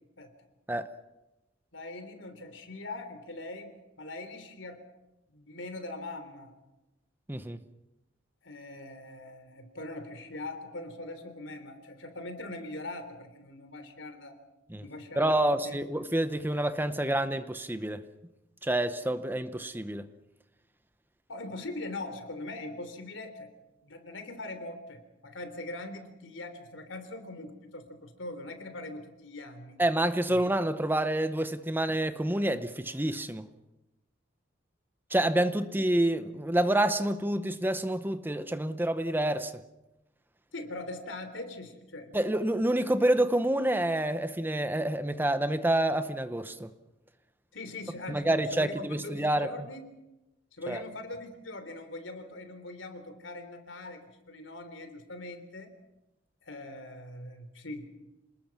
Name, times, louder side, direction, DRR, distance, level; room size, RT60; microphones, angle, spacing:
voice 1, 1.7-4.8 5.3-6.5 8.4-14.4 14.8-15.8 21.3-23.5 23.8-29.8 30.3-30.4 40.5-42.2 47.5-49.8 50.6-55.7 56.4-57.9, left 2 dB, 80° left, 3.4 m, -42 dB
voice 2, 7.3-7.6 14.7-14.8 15.2-18.0 18.6-20.1 29.8-33.5 35.1-39.5 42.1-46.7 48.1-49.5 50.7-50.8, right 1 dB, 10° right, 0.8 m, -28 dB
27.0 x 20.0 x 5.9 m
head